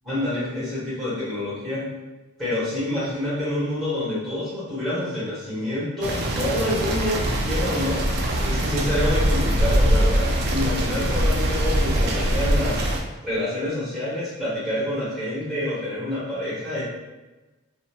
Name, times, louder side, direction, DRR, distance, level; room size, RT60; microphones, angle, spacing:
voice 1, 0.0-1.9 2.4-8.0 8.4-12.9 13.2-16.8, left 1 dB, ahead, -10 dB, 1.2 m, -27 dB
sound 1, 6.0-13.0, right 1 dB, 50° right, 0.4 m, -22 dB
2.8 x 2.0 x 2.9 m, 1.1 s
head